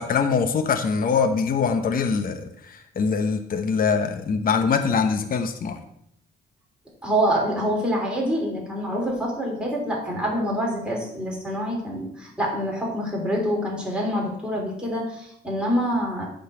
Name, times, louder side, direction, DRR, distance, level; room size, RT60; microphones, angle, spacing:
voice 1, 0.0-5.8, left 5 dB, 45° left, 6 dB, 0.8 m, -23 dB
voice 2, 7.0-16.3, equal, 5° right, -3 dB, 3.4 m, -26 dB
8.5 x 4.0 x 6.9 m, 0.75 s
cardioid pair, 90°, 20 cm